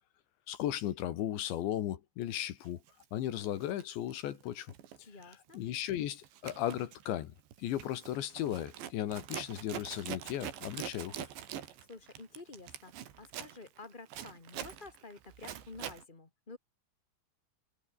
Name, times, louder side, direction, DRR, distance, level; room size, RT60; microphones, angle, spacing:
voice 1, 0.5-2.8 3.1-4.7 5.5-7.3 7.6-11.2, left 12 dB, 75° left, 4.0 m, -36 dB
Zipper (clothing), 2.9-3.1 3.6-5.0 5.2-5.6 5.9-16.0, right 10 dB, 75° right, 4.5 m, -45 dB
voice 2, 5.0-5.6 11.8-16.6, left 3 dB, 60° left, 0.5 m, -50 dB
omnidirectional pair, 5.2 m